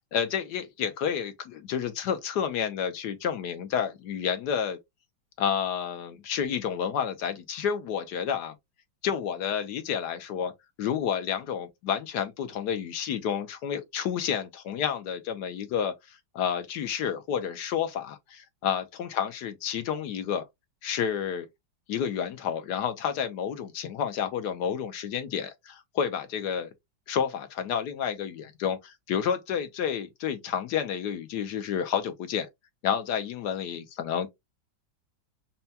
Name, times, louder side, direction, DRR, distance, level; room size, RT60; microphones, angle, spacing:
voice 1, 0.1-4.8 5.4-8.5 9.0-10.5 10.8-20.4 20.8-21.5 21.9-26.7 27.1-32.5 32.8-34.3, left 8 dB, 70° left, 1.1 m, -30 dB
5.5 x 2.2 x 2.7 m
omnidirectional pair, 2.1 m